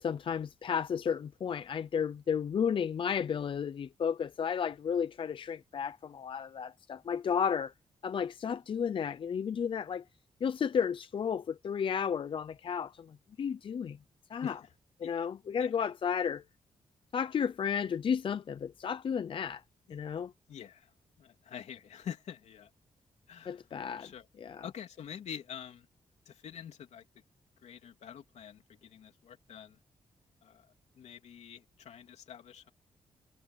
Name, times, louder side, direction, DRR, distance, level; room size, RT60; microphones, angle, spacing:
voice 1, 0.0-7.7 8.0-10.0 10.4-14.0 14.3-14.6 15.0-16.4 17.1-19.6 19.9-20.3 23.5-24.1 24.4-24.7, left 7 dB, 50° left, 0.6 m, -33 dB
voice 2, 20.5-20.9 21.2-22.7 23.3-23.6 24.0-24.3 24.6-25.9 26.2-27.1 27.6-29.8 30.4-30.7 30.9-32.7, left 9 dB, 80° left, 3.2 m, -46 dB
wide cardioid pair, 125°, 11 cm